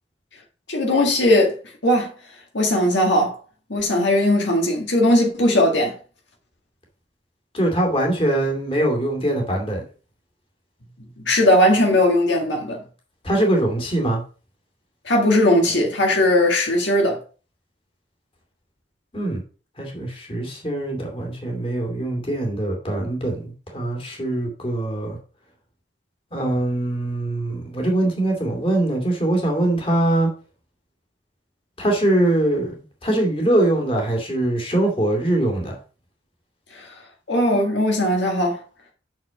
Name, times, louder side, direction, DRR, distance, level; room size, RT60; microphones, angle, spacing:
voice 1, 0.7-1.6 1.8-2.1 2.5-3.4 3.7-5.9 11.2-12.8 15.1-17.2 36.7-36.9 37.3-38.6, left 1 dB, 70° left, 1.8 m, -18 dB
voice 2, 7.5-9.8 13.2-14.2 19.1-19.4 19.8-25.2 26.3-30.3 31.8-35.7, right 1 dB, 30° left, 2.4 m, -22 dB
6.6 x 6.1 x 4.9 m
head